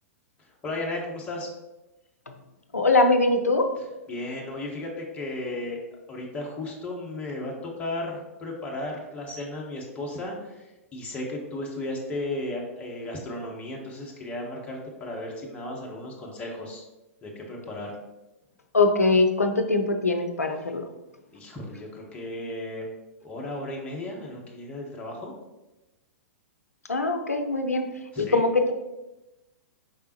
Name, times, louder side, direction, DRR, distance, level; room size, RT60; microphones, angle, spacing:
voice 1, 0.4-1.5 4.1-5.8 6.1-16.8 17.2-18.0 21.3-22.9 23.2-25.3 28.1-28.4, left 1 dB, 15° left, -2 dB, 0.9 m, -35 dB
voice 2, 2.7-3.7 18.7-20.9 26.9-27.9 28.2-28.7, left 3 dB, 80° left, 6 dB, 0.5 m, -22 dB
4.8 x 3.5 x 2.9 m, 1.0 s
figure-of-eight pair, 105°, 8 cm